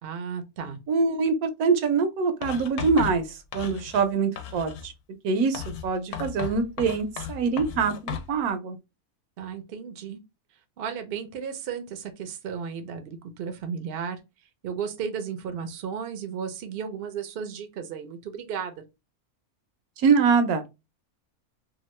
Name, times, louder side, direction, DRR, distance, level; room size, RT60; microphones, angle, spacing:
voice 1, 0.0-0.8 9.4-10.2 10.8-14.2 14.6-18.8, right 7 dB, 60° right, 0.6 m, -34 dB
voice 2, 0.9-4.9 5.2-8.8 20.0-20.6, right 5 dB, 80° right, 1.1 m, -24 dB
Writing, 2.4-4.1 4.4-4.9 5.5-8.3, left 8 dB, 90° left, 1.1 m, -35 dB
2.9 x 2.3 x 3.0 m
omnidirectional pair, 1.5 m